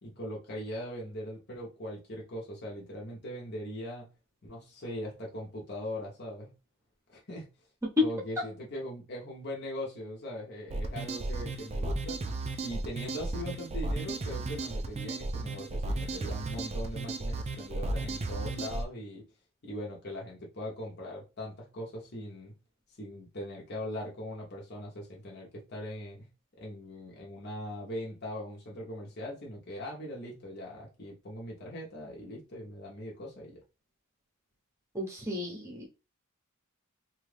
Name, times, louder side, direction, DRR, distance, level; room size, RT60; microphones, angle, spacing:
voice 1, 0.0-4.1 4.4-6.5 7.1-7.5 8.0-12.2 12.6-19.2 19.6-22.5 23.0-26.3 26.6-33.6, equal, 50° left, 0.9 m, -40 dB
sound 1, 10.7-18.8, right 2 dB, 30° right, 0.4 m, -34 dB
voice 2, 34.9-35.9, equal, 10° right, 0.8 m, -36 dB
3.0 x 2.3 x 3.3 m
head